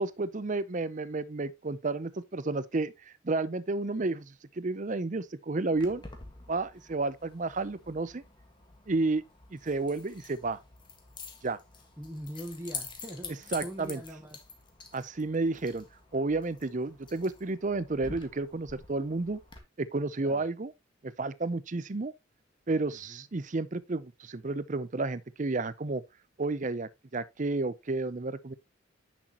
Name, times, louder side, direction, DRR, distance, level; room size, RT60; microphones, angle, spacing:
voice 1, 0.0-6.0 6.5-8.2 8.9-9.2 9.5-10.6 11.4-11.6 13.5-14.0 14.9-15.9 16.1-19.4 19.8-20.7 21.0-22.1 22.7-26.0 26.4-28.5, right 3 dB, 40° right, 0.6 m, -31 dB
Keys jangling, 5.8-19.6, left 4 dB, 25° left, 1.6 m, -47 dB
voice 2, 12.0-14.4 20.2-20.4 22.9-23.2, equal, 10° right, 1.2 m, -42 dB
10.0 x 6.2 x 2.9 m
head